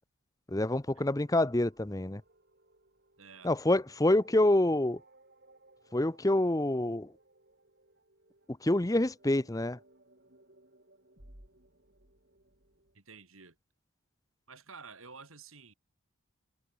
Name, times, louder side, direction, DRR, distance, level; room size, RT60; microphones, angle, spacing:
voice 1, 0.5-2.2 3.4-5.0 5.9-7.1 8.5-9.8, left 1 dB, 15° left, 0.7 m, -27 dB
sound 1, 0.7-13.0, right 1 dB, 50° right, 4.8 m, -62 dB
voice 2, 3.2-3.5 12.9-13.6 14.5-15.7, right 5 dB, 75° right, 4.4 m, -51 dB
head